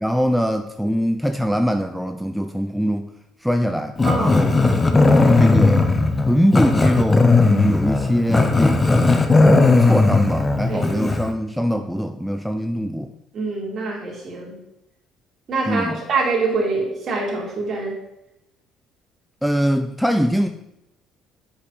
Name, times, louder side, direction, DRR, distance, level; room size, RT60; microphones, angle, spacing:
voice 1, 0.0-3.1 3.4-4.8 5.4-5.9 6.2-9.2 9.8-13.1 15.7-16.0 19.4-20.5, equal, ahead, 6 dB, 0.3 m, -22 dB
Growling, 4.0-11.3, left 3 dB, 20° left, 0.7 m, -16 dB
voice 2, 4.0-4.5 10.7-11.1 13.3-14.6 15.5-18.0, right 3 dB, 45° right, -2 dB, 2.6 m, -25 dB
6.9 x 5.8 x 4.0 m, 0.86 s
cardioid pair, 110°, 0 cm